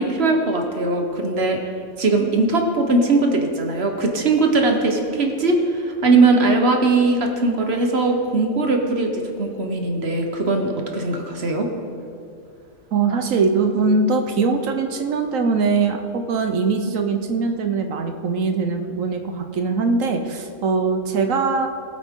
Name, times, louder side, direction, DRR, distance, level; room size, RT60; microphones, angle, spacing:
voice 1, 0.0-1.6 2.0-9.1 9.4-11.7, right 3 dB, 50° right, 3 dB, 1.4 m, -20 dB
voice 2, 12.9-21.7, right 4 dB, 75° right, 6 dB, 1.2 m, -21 dB
19.0 x 8.2 x 3.7 m, 2.5 s
omnidirectional pair, 1.4 m